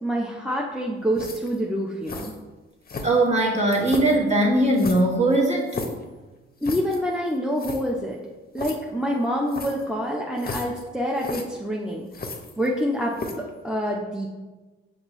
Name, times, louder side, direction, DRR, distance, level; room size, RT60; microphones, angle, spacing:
voice 1, 0.0-2.3 6.6-8.2 8.5-12.1 12.6-13.1 13.6-14.3, equal, 5° right, -2 dB, 0.7 m, -26 dB
sound 1, 1.1-1.6 2.1-2.4 2.9-3.4 3.8-4.2 4.8-6.0 6.6-7.0 7.3-7.4 7.6-7.8 8.6-8.8 9.5-9.9 10.4-10.8 11.2-11.4 12.1-12.8 13.1-13.5, left 3 dB, 30° left, 0.7 m, -34 dB
voice 2, 3.0-5.7, right 1 dB, 25° right, -3 dB, 1.3 m, -20 dB
5.9 x 2.7 x 3.1 m, 1.2 s
hypercardioid pair, 45°, 29 cm